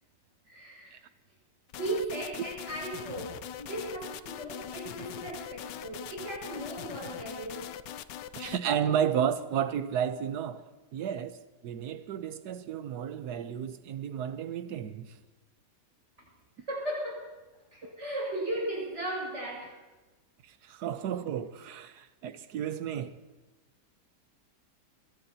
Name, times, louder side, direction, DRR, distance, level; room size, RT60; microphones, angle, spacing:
voice 1, 0.5-1.0 1.7-7.7 16.2-16.3 16.7-17.4 17.7-19.8, right 1 dB, 40° right, 6.3 m, -36 dB
sound 1, 1.7-8.6, left 10 dB, 90° left, 1.3 m, -42 dB
voice 2, 8.4-11.4 11.6-15.1 20.4-23.1, right 9 dB, 70° right, 1.4 m, -32 dB
22.5 x 22.5 x 2.9 m
omnidirectional pair, 1.8 m